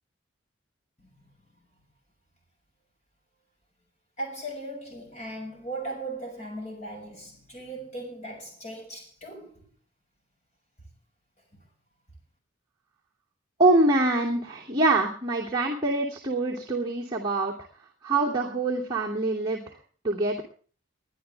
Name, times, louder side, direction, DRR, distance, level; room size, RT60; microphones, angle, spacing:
voice 1, 4.2-9.6 11.5-11.6, right 1 dB, 35° left, 6.4 m, -38 dB
voice 2, 13.6-17.5 18.0-19.6 20.0-20.4, right 2 dB, 20° right, 2.7 m, -24 dB
22.0 x 12.0 x 3.5 m
head